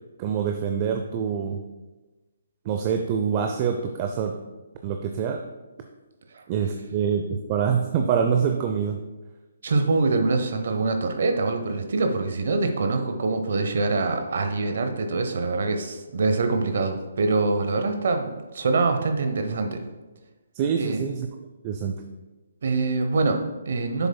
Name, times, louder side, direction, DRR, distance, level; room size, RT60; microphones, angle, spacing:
voice 1, 0.2-1.6 2.7-4.3 4.8-5.4 6.5-9.0 20.6-21.3 21.6-21.9, right 7 dB, 30° right, 4 dB, 0.4 m, -25 dB
voice 2, 9.6-19.8 20.7-21.0 22.6-24.1, right 3 dB, 65° right, 6 dB, 0.8 m, -24 dB
7.4 x 7.0 x 2.2 m, 1.2 s
hypercardioid pair, 150°, 0 cm